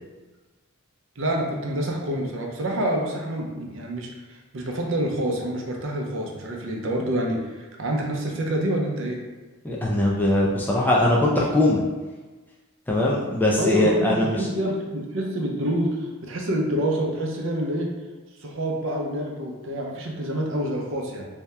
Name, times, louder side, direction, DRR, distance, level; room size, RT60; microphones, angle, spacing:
voice 1, 1.2-9.2 13.6-17.9 18.4-21.3, right 1 dB, 60° right, 0 dB, 0.6 m, -27 dB
voice 2, 9.6-11.8 12.9-14.5, left 1 dB, 10° left, -4 dB, 0.4 m, -21 dB
3.4 x 2.8 x 3.3 m, 1.3 s
head